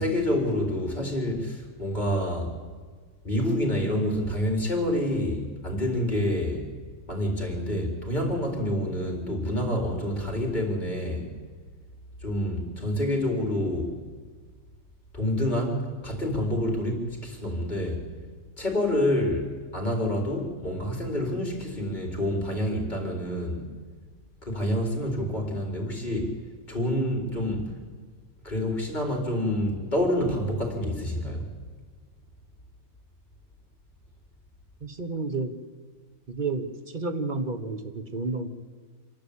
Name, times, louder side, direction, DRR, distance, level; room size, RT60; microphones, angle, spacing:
voice 1, 0.0-2.5 3.2-6.7 7.1-11.3 12.2-13.9 15.1-18.0 18.6-23.7 24.4-26.4 26.7-27.7 28.4-31.5, left 1 dB, 30° left, 1 dB, 4.4 m, -27 dB
voice 2, 34.8-35.5 36.3-38.5, right 3 dB, 35° right, 8 dB, 1.3 m, -31 dB
26.5 x 11.5 x 8.6 m, 1.5 s
omnidirectional pair, 1.6 m